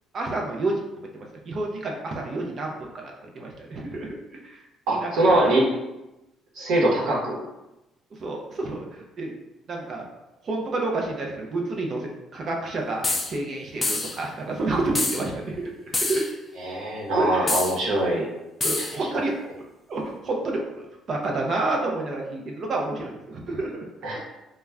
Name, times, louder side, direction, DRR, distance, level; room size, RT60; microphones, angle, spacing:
voice 1, 0.1-0.8 1.1-4.4 4.9-5.5 8.1-9.3 9.7-10.0 10.4-16.2 17.1-17.5 18.6-19.4 19.9-23.8, right 2 dB, 50° right, 0 dB, 0.5 m, -29 dB
voice 2, 4.9-5.7 6.5-7.4 16.6-18.3 18.8-18.9 19.1-19.2 24.0-24.2, right 1 dB, 80° right, -3 dB, 0.9 m, -22 dB
sound 1, 13.0-13.3 13.8-14.2 15.0-15.2 15.9-16.3 17.5-17.8 18.6-19.0, left 2 dB, 25° left, 0.4 m, -26 dB
2.2 x 2.1 x 3.4 m, 0.96 s
cardioid pair, 100°, 0 cm